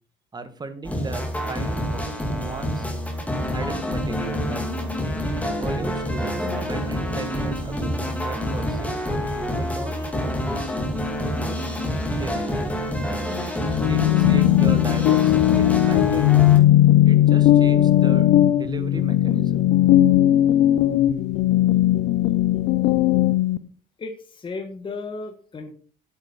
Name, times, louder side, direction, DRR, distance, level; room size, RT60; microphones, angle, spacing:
voice 1, 0.3-2.9 3.5-4.7 5.6-10.7 11.2-11.6 12.1-12.7 13.8-16.4 17.1-19.7, right 3 dB, 25° right, 10 dB, 1.6 m, -36 dB
sound 1, 0.8-16.6, equal, 10° left, 2.4 m, -27 dB
sound 2, 13.6-23.6, left 13 dB, 85° left, 0.8 m, -17 dB
voice 2, 24.0-25.7, left 3 dB, 30° left, 5 dB, 1.7 m, -34 dB
8.4 x 8.1 x 5.6 m, 0.42 s
cardioid pair, 110°, 17 cm